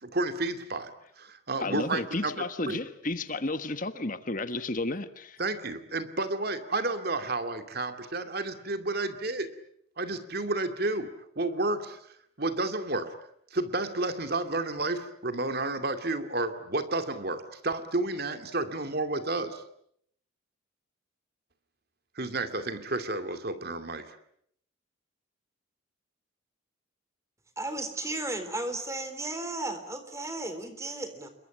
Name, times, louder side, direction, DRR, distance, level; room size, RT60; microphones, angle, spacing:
voice 1, 0.0-0.9 1.2-2.3 2.7-2.8 5.4-9.5 10.0-12.0 12.4-13.1 13.5-19.6 22.2-24.2, right 2 dB, 50° right, 2.3 m, -31 dB
voice 2, 1.6-5.4, left 2 dB, 40° left, 1.3 m, -32 dB
voice 3, 27.6-31.3, right 2 dB, 15° right, 3.6 m, -34 dB
28.0 x 23.0 x 8.9 m
head